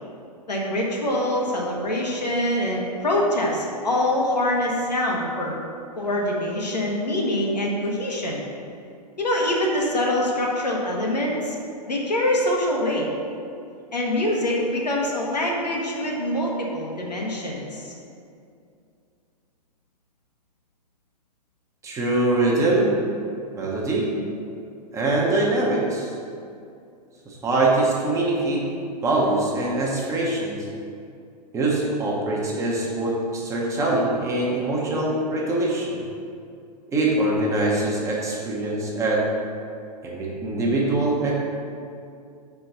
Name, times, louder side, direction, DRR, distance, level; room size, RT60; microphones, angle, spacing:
voice 1, 0.5-5.5 5.9-8.5 9.2-11.6 11.9-13.1 13.9-17.9, left 1 dB, 75° left, -2 dB, 1.2 m, -24 dB
voice 2, 21.8-23.0 23.5-24.1 24.9-26.1 27.3-28.6 29.0-30.7 31.5-36.0 36.9-39.3 40.0-41.3, right 2 dB, 15° right, -4 dB, 0.9 m, -23 dB
4.7 x 4.3 x 5.3 m, 2.4 s
figure-of-eight pair, 105°, 21 cm